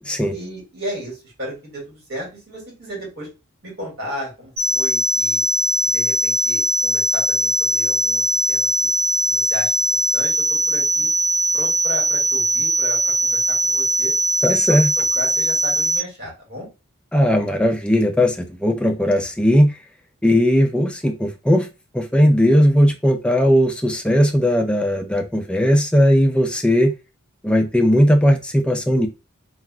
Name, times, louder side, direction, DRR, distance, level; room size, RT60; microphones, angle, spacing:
voice 1, 0.3-3.3 3.6-5.4 5.8-8.9 9.3-9.7 10.1-11.1 11.5-14.1 14.5-14.9 15.1-16.7, equal, 50° right, -3 dB, 1.9 m, -34 dB
sound 1, 4.6-16.0, right 2 dB, 85° right, 1.0 m, -20 dB
voice 2, 14.4-14.9 17.1-19.7 20.2-21.7 21.9-26.9 27.4-29.1, equal, 5° left, 4 dB, 0.4 m, -17 dB
3.4 x 2.4 x 2.3 m, 0.28 s
head